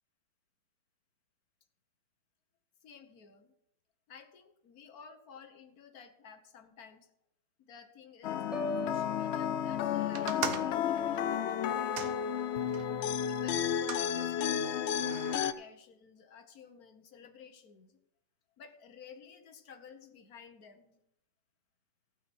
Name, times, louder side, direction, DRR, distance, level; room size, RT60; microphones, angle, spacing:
voice 1, 2.8-3.5 4.1-7.1 7.6-8.4 8.8-12.1 13.2-14.9 15.4-18.0 18.6-21.0, left 6 dB, 65° left, 7 dB, 1.6 m, -54 dB
sound 1, 8.2-15.5, left 9 dB, 90° left, 0.5 m, -32 dB
Piano, 8.5-12.5 12.9-13.2, left 1 dB, ahead, 1.4 m, -44 dB
sound 2, 10.1-12.9 13.5-14.1 14.9-15.5, right 7 dB, 65° right, 1.3 m, -40 dB
15.5 x 5.8 x 6.1 m, 0.79 s
omnidirectional pair, 1.7 m